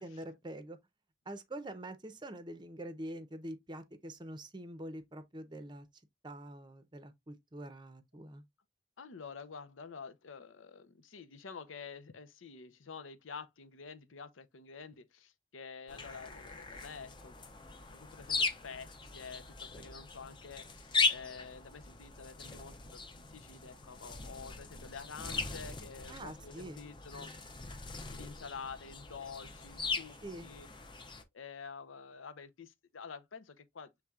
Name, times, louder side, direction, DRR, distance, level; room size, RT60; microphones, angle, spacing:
voice 1, 0.0-0.8 1.3-5.9 6.2-8.4 26.1-26.8 30.2-30.5, right 1 dB, 25° right, 0.6 m, -45 dB
voice 2, 9.0-17.4 17.9-27.3 28.1-30.7 31.3-33.9, left 5 dB, 90° left, 0.7 m, -48 dB
sound 1, 15.9-31.2, left 4 dB, 25° left, 0.6 m, -39 dB
6.9 x 3.3 x 2.3 m
head